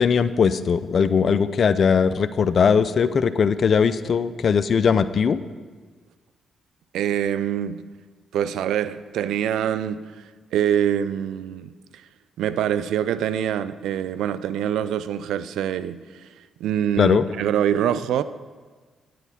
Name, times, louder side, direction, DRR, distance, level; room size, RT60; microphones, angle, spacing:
voice 1, 0.0-5.4 17.0-17.2, left 6 dB, 55° left, 0.4 m, -19 dB
voice 2, 6.9-7.8 8.3-12.1 12.4-18.2, right 9 dB, 80° right, 0.3 m, -25 dB
9.2 x 9.0 x 4.2 m
supercardioid pair, 55°, 0 cm